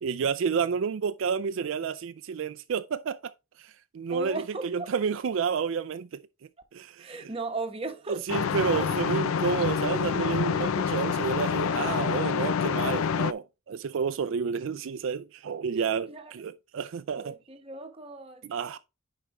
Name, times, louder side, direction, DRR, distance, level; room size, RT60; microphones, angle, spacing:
voice 1, 0.0-3.3 3.6-6.2 6.7-7.3 8.1-17.4 18.5-18.8, right 6 dB, 70° right, 0.4 m, -30 dB
voice 2, 4.1-4.9 7.0-8.2 8.7-9.0 16.1-16.3 17.1-18.4, right 3 dB, 25° right, 1.0 m, -36 dB
sound 1, 8.3-13.3, left 6 dB, 90° left, 0.4 m, -27 dB
9.8 x 4.9 x 3.0 m
head